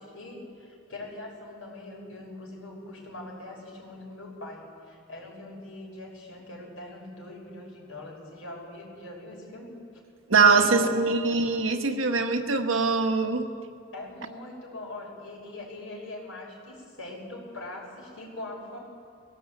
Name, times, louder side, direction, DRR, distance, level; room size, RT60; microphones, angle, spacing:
voice 1, 0.0-9.7 10.5-10.9 13.9-18.8, left 2 dB, 90° left, -2 dB, 6.1 m, -42 dB
voice 2, 10.3-13.4, right 4 dB, 80° right, 4 dB, 1.5 m, -22 dB
21.0 x 16.5 x 8.5 m, 2.4 s
head